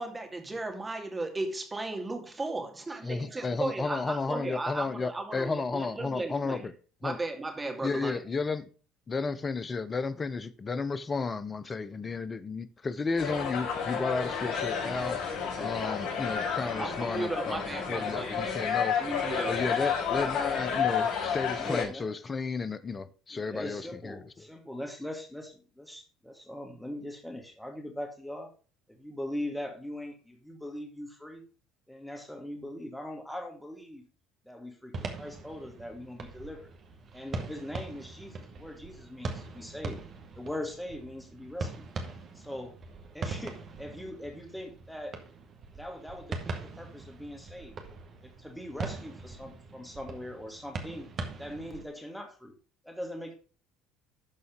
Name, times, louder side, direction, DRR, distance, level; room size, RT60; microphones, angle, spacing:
voice 1, 0.0-6.6 7.0-8.2 16.5-18.6 19.0-19.6, right 2 dB, 20° right, 2.4 m, -35 dB
voice 2, 3.0-6.7 7.0-7.2 7.8-8.6 9.1-15.3 15.6-17.6 17.9-19.0 19.5-24.2, left 4 dB, 30° left, 0.9 m, -33 dB
sound 1, 13.2-21.8, left 7 dB, 60° left, 5.3 m, -31 dB
voice 3, 21.5-22.1 23.3-28.5 28.9-31.4 31.9-34.0 34.4-36.7 37.1-40.0 40.4-41.9 42.3-42.7 43.1-45.2 45.7-47.8 48.2-51.1 51.4-52.5 52.8-53.3, left 1 dB, 5° left, 2.2 m, -41 dB
sound 2, 34.9-51.8, right 3 dB, 45° right, 2.0 m, -41 dB
12.5 x 4.2 x 5.3 m
hypercardioid pair, 70°, 0 cm